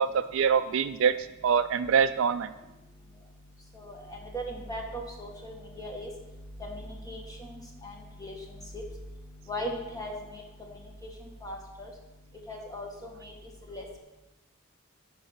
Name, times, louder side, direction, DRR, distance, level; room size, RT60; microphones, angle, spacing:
voice 1, 0.0-2.5, right 7 dB, 65° right, 9 dB, 0.3 m, -25 dB
voice 2, 3.7-6.1 6.6-7.5 7.8-7.9 8.2-8.8 9.5-10.4 11.4-11.9 12.5-13.3 13.7-13.8, equal, 15° left, 0 dB, 1.7 m, -38 dB
9.7 x 5.7 x 7.4 m, 1.0 s
head